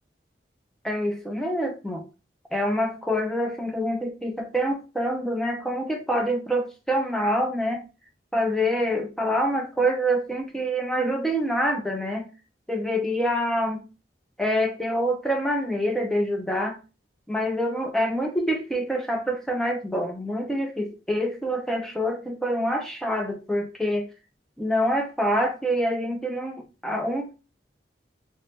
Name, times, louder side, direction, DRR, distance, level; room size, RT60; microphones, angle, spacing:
voice 1, 0.8-2.1 2.5-7.8 8.3-12.3 12.7-13.8 14.4-16.8 17.3-24.1 24.6-27.4, equal, ahead, 0.5 m, -26 dB
3.9 x 2.1 x 3.2 m
head